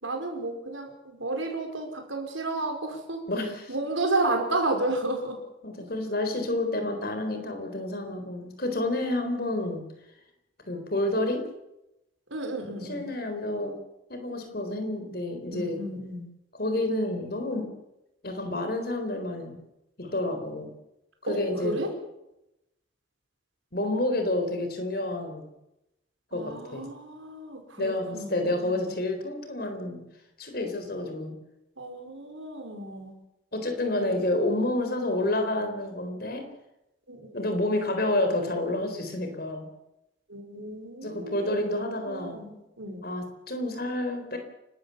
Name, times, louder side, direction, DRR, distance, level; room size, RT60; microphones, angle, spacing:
voice 1, 0.0-3.2 3.7-5.4 12.3-13.1 15.5-16.2 21.3-21.9 26.3-28.9 31.8-33.2 34.0-34.2 37.1-37.3 40.3-41.6 42.1-43.0, right 2 dB, 80° right, 4 dB, 5.1 m, -32 dB
voice 2, 3.3-3.7 5.6-9.8 10.7-11.5 12.8-13.8 14.1-15.8 16.5-17.7 18.2-19.6 20.0-20.7 21.2-21.8 23.7-25.5 26.3-26.9 27.8-30.0 30.4-31.4 33.5-36.5 37.3-39.7 41.0-42.4 43.0-44.4, left 1 dB, 50° left, 6 dB, 4.1 m, -29 dB
29.0 x 13.0 x 7.2 m, 0.89 s
head